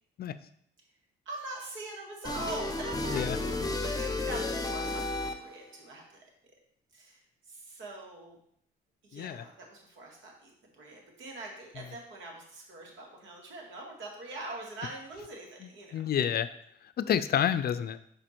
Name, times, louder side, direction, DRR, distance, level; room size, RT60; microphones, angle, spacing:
voice 1, 1.3-6.0 6.9-7.2 7.5-8.4 9.0-16.0, right 2 dB, 75° right, 0 dB, 2.0 m, -43 dB
sound 1, 2.2-5.7, left 2 dB, 20° left, 0.8 m, -33 dB
voice 2, 9.1-9.4 15.9-16.5 17.0-18.0, left 9 dB, 50° left, 13 dB, 0.4 m, -28 dB
6.2 x 4.9 x 4.4 m, 0.67 s
cardioid pair, 90°, 20 cm